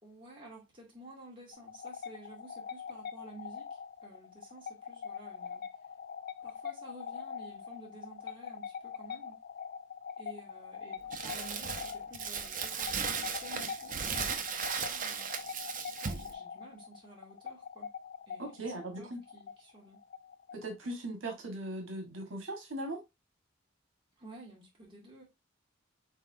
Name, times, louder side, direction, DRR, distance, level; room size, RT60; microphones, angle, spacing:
voice 1, 0.0-5.6 6.4-9.4 10.2-15.3 16.0-17.9 18.3-20.0 24.2-25.2, right 2 dB, 25° right, 2.1 m, -52 dB
sound 1, 1.5-20.9, left 7 dB, 50° left, 0.4 m, -44 dB
Crumpling crinkling, 11.1-16.3, right 6 dB, 45° right, 0.7 m, -36 dB
voice 2, 18.4-19.2 20.5-23.0, right 1 dB, 85° right, 1.4 m, -39 dB
5.6 x 3.5 x 2.6 m
head